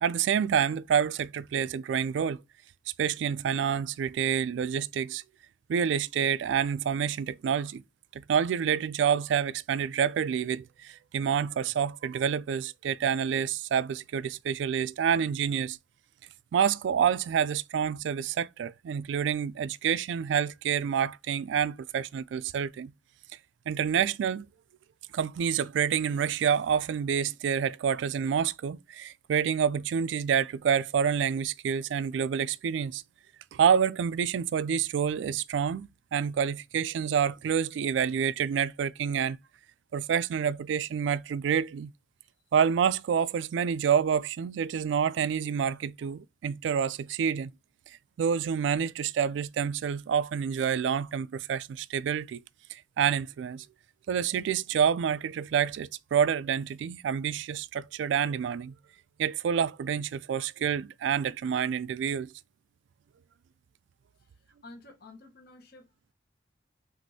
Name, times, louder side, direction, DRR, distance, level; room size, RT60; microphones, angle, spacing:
voice 1, 0.0-2.4 3.0-5.2 5.7-7.8 8.1-15.8 16.5-22.9 23.7-24.5 25.1-33.0 33.5-39.4 39.9-41.9 42.5-47.5 48.2-52.4 52.7-53.7 54.1-58.7 59.2-62.3, right 7 dB, 80° right, 0.3 m, -28 dB
voice 2, 64.2-66.1, left 2 dB, 60° left, 1.0 m, -52 dB
6.1 x 2.5 x 2.7 m
head